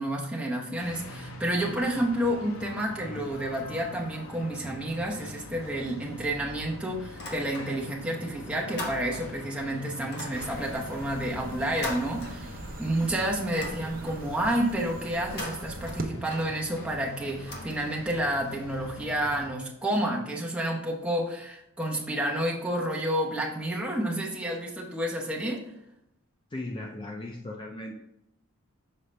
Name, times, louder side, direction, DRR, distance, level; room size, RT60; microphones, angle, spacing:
voice 1, 0.0-25.6, right 1 dB, 5° right, -3 dB, 0.9 m, -30 dB
sound 1, 0.8-19.5, left 2 dB, 65° left, 0.8 m, -44 dB
sound 2, 7.1-8.0 8.3-9.5 10.0-12.9 13.2-14.3 15.1-18.3, left 2 dB, 50° left, 1.1 m, -42 dB
sound 3, 10.3-16.0, right 2 dB, 40° right, 0.6 m, -42 dB
voice 2, 26.5-28.0, left 1 dB, 20° left, 1 dB, 0.4 m, -37 dB
6.7 x 4.5 x 3.3 m, 0.81 s
head